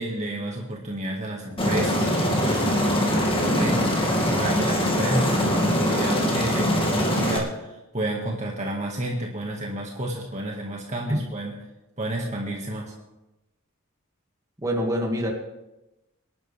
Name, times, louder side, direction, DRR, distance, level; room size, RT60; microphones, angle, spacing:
voice 1, 0.0-11.6 12.0-12.9, right 1 dB, 35° right, -1 dB, 1.9 m, -30 dB
Aircraft, 1.6-7.4, equal, 25° left, 2.4 m, -23 dB
voice 2, 14.6-15.3, equal, 15° right, -1 dB, 2.2 m, -25 dB
25.5 x 11.5 x 3.5 m, 0.98 s
head